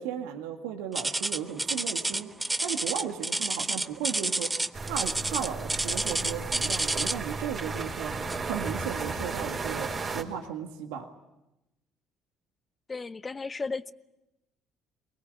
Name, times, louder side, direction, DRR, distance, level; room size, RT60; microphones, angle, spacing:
voice 1, 0.0-2.3 2.6-8.1 8.5-9.9 10.1-11.1, right 9 dB, 80° right, 1.9 m, -35 dB
sound 1, 0.9-7.3 8.3-8.5 9.1-9.2 9.9-10.0, right 2 dB, 15° right, 1.1 m, -29 dB
sound 2, 4.7-10.2, right 4 dB, 40° right, 4.2 m, -34 dB
voice 2, 12.9-13.9, left 4 dB, 30° left, 1.0 m, -34 dB
23.5 x 20.5 x 9.7 m
hypercardioid pair, 60°, 0 cm